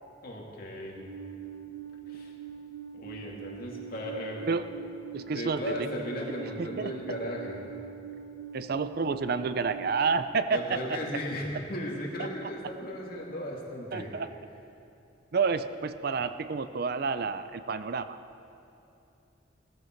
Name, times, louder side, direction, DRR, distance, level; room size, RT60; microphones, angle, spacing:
voice 1, 0.2-1.0 2.1-2.3 2.9-4.5 5.2-7.6 10.5-14.1, equal, 50° left, -2 dB, 2.4 m, -36 dB
Alarm, 1.0-9.9, right 8 dB, 85° right, 1.0 m, -43 dB
voice 2, 5.1-5.7 6.6-6.9 8.5-11.0 12.4-12.5 13.9-14.3 15.3-18.2, right 5 dB, 50° right, 12 dB, 0.5 m, -29 dB
17.5 x 14.0 x 4.5 m, 2.7 s
head